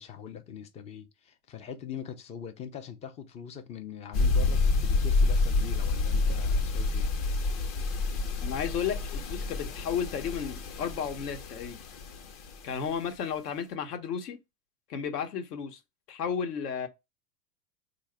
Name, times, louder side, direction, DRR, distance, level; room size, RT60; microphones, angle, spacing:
voice 1, 0.0-7.1, left 8 dB, 15° left, 0.3 m, -42 dB
sound 1, 4.1-12.6, left 3 dB, 40° left, 0.8 m, -28 dB
voice 2, 8.4-11.8 12.6-14.4 14.9-15.8 16.1-16.9, left 7 dB, 70° left, 1.1 m, -33 dB
3.8 x 2.5 x 3.3 m
hypercardioid pair, 100°, 48 cm